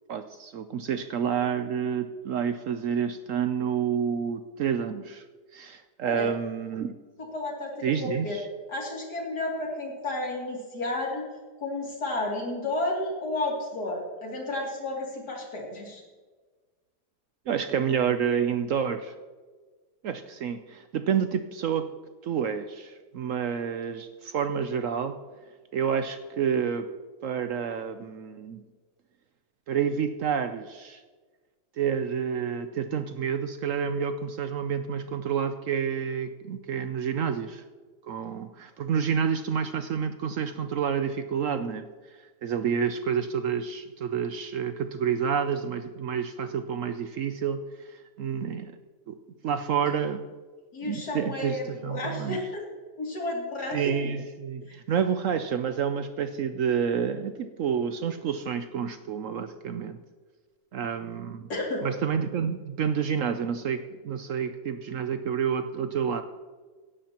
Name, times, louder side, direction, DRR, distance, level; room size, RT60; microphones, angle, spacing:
voice 1, 0.1-5.2 5.5-7.0 7.8-8.4 17.5-19.1 20.0-21.8 22.2-25.2 25.7-26.9 27.2-28.6 29.7-31.0 31.8-37.6 38.0-41.8 42.4-48.7 49.1-49.2 49.4-50.2 50.8-52.4 53.7-60.0 60.7-61.5 61.8-66.2, right 7 dB, 65° right, 9 dB, 0.8 m, -29 dB
voice 2, 7.3-8.4 8.7-11.3 11.6-16.0 50.7-52.6 53.0-53.8 61.5-61.9, left 2 dB, 75° left, -2 dB, 3.3 m, -32 dB
17.5 x 11.5 x 2.9 m, 1.4 s
omnidirectional pair, 1.8 m